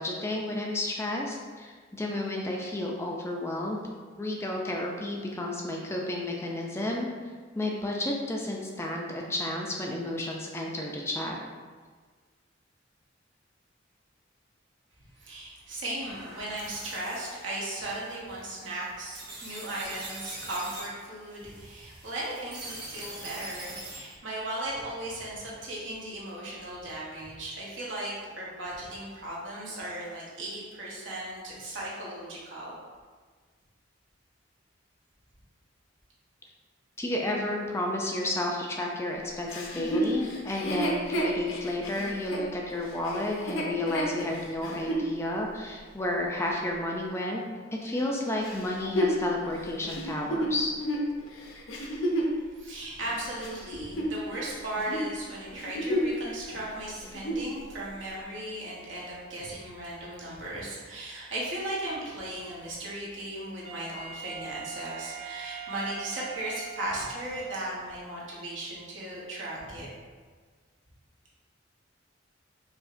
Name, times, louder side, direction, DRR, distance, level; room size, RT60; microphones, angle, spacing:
voice 1, 0.0-3.8 4.2-7.1 7.6-11.4 37.0-47.4 47.8-50.7, left 1 dB, 15° left, -1 dB, 0.3 m, -31 dB
voice 2, 15.2-32.7 52.4-69.9, right 1 dB, 75° right, -6 dB, 1.1 m, -37 dB
sound 1, 16.1-24.2, right 2 dB, 50° right, 1.1 m, -44 dB
Chuckle chortle, 39.5-45.1 45.7-45.8 48.4-52.4 53.0-54.5 54.8-55.1 55.5-56.2 56.5-56.6 57.0-57.5 58.1-58.2, equal, 85° left, 0.6 m, -31 dB
Wind instrument woodwind instrument, 63.6-67.6, right 7 dB, 30° right, 0.7 m, -42 dB
4.8 x 2.8 x 2.5 m, 1.5 s
head